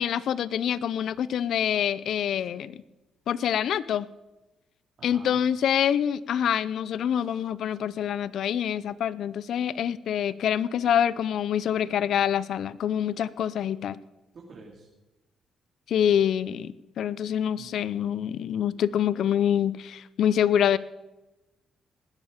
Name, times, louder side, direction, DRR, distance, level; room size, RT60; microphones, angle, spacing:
voice 1, 0.0-2.8 3.3-4.1 5.0-14.0 15.9-20.8, left 9 dB, 70° left, 18 dB, 0.6 m, -26 dB
voice 2, 5.0-5.4 14.3-14.9 17.5-18.3, right 4 dB, 50° right, -2 dB, 2.9 m, -48 dB
19.5 x 10.5 x 5.2 m, 1.0 s
cardioid pair, 90°, 0 cm